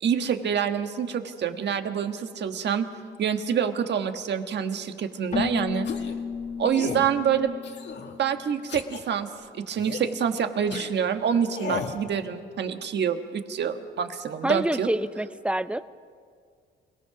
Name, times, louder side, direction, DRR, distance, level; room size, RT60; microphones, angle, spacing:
voice 1, 0.0-2.9 3.2-5.9 6.6-7.5 8.2-9.3 9.6-14.9, right 8 dB, 60° right, 7 dB, 1.5 m, -26 dB
Keyboard (musical), 5.3-8.9, left 5 dB, 35° left, 1.7 m, -34 dB
sound 1, 5.8-6.2 6.7-7.1 7.6-8.2 8.7-9.0 9.8-10.1 10.7-10.9 11.5-12.0, left 6 dB, 60° left, 2.0 m, -34 dB
voice 2, 14.4-15.8, right 1 dB, 5° right, 14 dB, 0.7 m, -27 dB
27.5 x 18.0 x 6.0 m, 2.1 s
cardioid pair, 90°, 20 cm